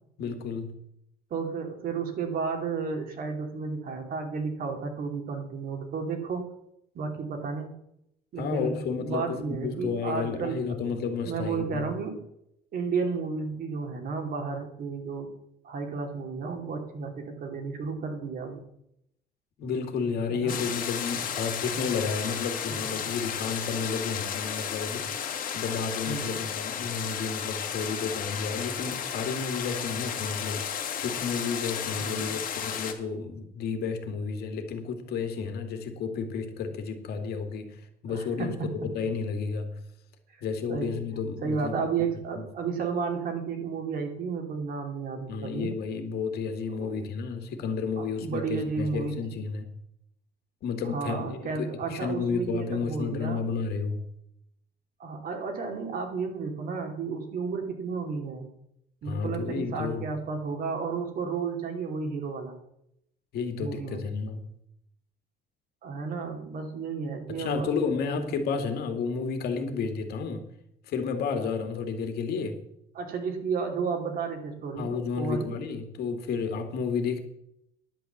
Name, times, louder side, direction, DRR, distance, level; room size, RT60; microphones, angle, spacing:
voice 1, 0.2-0.8 8.4-11.9 19.6-25.2 25.5-30.7 31.0-39.8 40.4-41.9 45.3-49.8 50.6-54.1 59.0-60.1 63.3-64.5 67.3-70.4 70.9-72.6 74.8-77.2, left 5 dB, 70° left, 2.1 m, -31 dB
voice 2, 1.3-6.4 6.9-7.7 8.3-10.6 10.9-11.0 11.2-12.2 12.7-15.3 15.6-18.6 20.2-20.6 22.7-22.9 26.1-26.5 32.0-32.4 38.1-38.7 40.7-40.9 41.4-45.7 46.8-47.0 48.0-49.1 50.8-53.4 55.0-58.5 59.0-62.5 63.6-64.0 65.8-67.7 72.9-75.5, right 5 dB, 60° right, 2.8 m, -32 dB
sound 1, 20.5-32.9, left 8 dB, 55° left, 2.0 m, -33 dB
10.5 x 8.2 x 7.2 m
cardioid pair, 110°, 17 cm